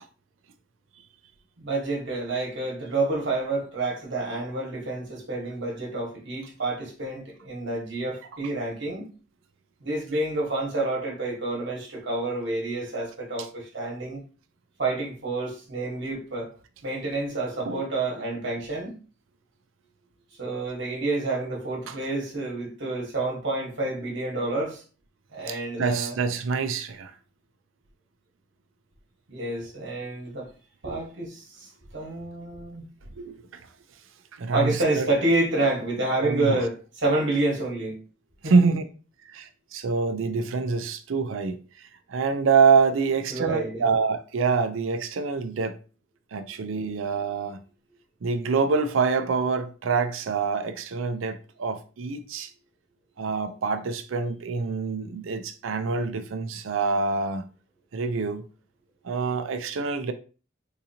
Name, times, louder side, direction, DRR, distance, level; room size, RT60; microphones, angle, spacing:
voice 1, 1.6-9.1 9.8-14.2 14.8-16.5 16.8-19.0 20.4-24.8 25.3-26.1 29.3-30.5 30.8-32.9 34.5-38.0 38.4-38.5 43.3-43.9, right 2 dB, 65° right, 1.3 m, -28 dB
voice 2, 25.5-27.1 33.2-33.5 34.3-35.1 36.2-36.6 38.4-38.8 39.3-45.8 46.3-47.6 48.2-52.5 53.2-57.4 57.9-58.5 59.0-60.1, right 5 dB, 90° right, 0.5 m, -26 dB
3.7 x 2.9 x 2.7 m
head